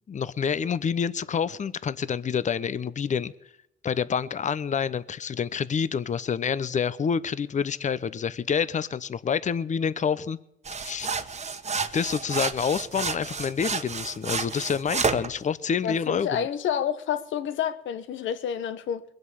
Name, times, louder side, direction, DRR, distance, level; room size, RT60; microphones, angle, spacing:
voice 1, 0.1-3.3 3.8-10.4 10.8-11.1 11.9-16.5, left 7 dB, 40° left, 0.7 m, -27 dB
sound 1, 10.6-15.3, right 5 dB, 35° right, 1.3 m, -30 dB
voice 2, 15.8-19.0, left 9 dB, 75° left, 1.2 m, -29 dB
21.5 x 8.0 x 7.1 m
cardioid pair, 90°, 20 cm